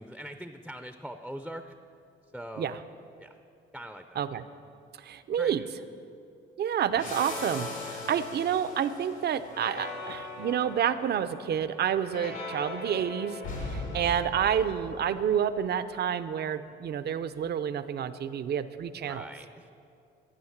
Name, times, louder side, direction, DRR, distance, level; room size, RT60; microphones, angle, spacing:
voice 1, 0.0-1.7 2.3-2.8 3.2-3.3 3.7-4.2 5.4-5.7 19.0-19.7, equal, ahead, 8 dB, 0.6 m, -42 dB
voice 2, 5.0-5.6 6.6-13.4 13.7-19.3, right 8 dB, 55° right, 12 dB, 0.6 m, -29 dB
sound 1, 6.9-15.4, left 3 dB, 85° left, 3.7 m, -39 dB
12.5 x 8.9 x 7.3 m, 2.6 s
cardioid pair, 90°, 20 cm